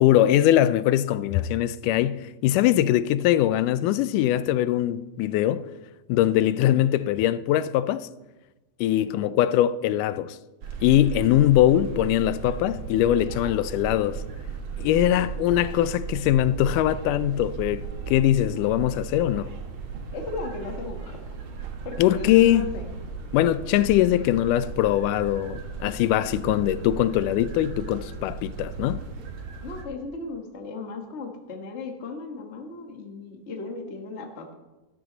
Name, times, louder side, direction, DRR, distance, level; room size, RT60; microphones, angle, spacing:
voice 1, 0.0-5.7 6.1-8.1 8.8-10.4 10.8-14.2 14.8-19.5 22.0-22.7 23.3-29.0, left 12 dB, 90° left, 2.1 m, -22 dB
voice 2, 9.0-9.3 20.1-21.2 21.8-22.9 26.3-27.0 29.6-34.5, left 3 dB, 45° left, 0.8 m, -37 dB
sound 1, 10.6-29.8, right 5 dB, 55° right, 1.7 m, -36 dB
13.0 x 12.5 x 4.0 m
omnidirectional pair, 3.6 m